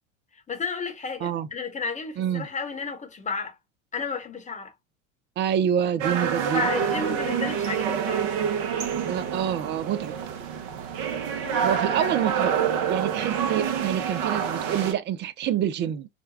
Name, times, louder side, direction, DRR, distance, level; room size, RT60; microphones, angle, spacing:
voice 1, 0.3-3.6 3.9-4.7 6.5-8.4 11.4-12.2 12.5-12.6, left 5 dB, 20° left, 1.0 m, -33 dB
voice 2, 2.2-2.5 5.4-6.7 9.0-10.1 11.6-12.5 12.9-16.2, right 9 dB, 30° right, 0.4 m, -27 dB
sound 1, 6.0-14.9, right 7 dB, 55° right, 0.9 m, -27 dB
5.0 x 2.2 x 2.2 m
hypercardioid pair, 80°, 40 cm